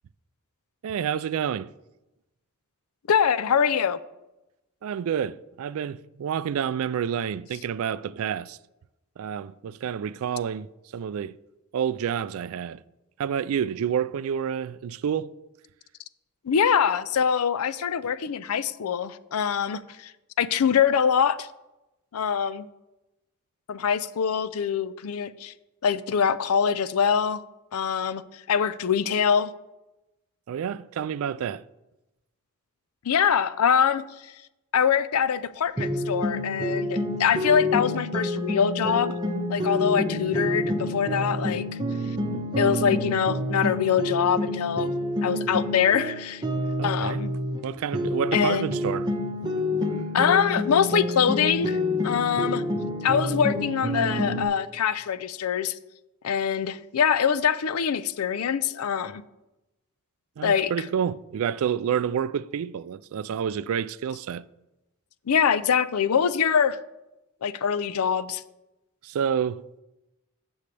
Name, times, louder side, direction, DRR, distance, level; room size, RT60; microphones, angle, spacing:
voice 1, 0.8-1.7 4.8-8.6 9.2-11.4 11.7-12.8 13.2-15.3 30.5-31.6 46.8-47.2 47.6-49.1 60.4-64.4 69.0-69.6, right 8 dB, 65° right, 0.3 m, -29 dB
voice 2, 3.1-4.0 16.4-20.1 20.4-21.5 22.1-22.7 23.7-25.5 25.8-27.4 27.7-29.5 33.0-34.0 34.7-39.1 39.5-41.6 42.6-44.9 45.2-46.4 46.8-47.3 48.3-48.7 50.1-52.6 53.0-55.8 56.2-59.2 60.4-60.7 65.3-66.8 67.4-68.4, left 7 dB, 80° left, 0.5 m, -24 dB
sound 1, 35.8-47.6 47.9-54.4, left 1 dB, 20° right, 0.9 m, -28 dB
15.0 x 6.3 x 3.3 m
head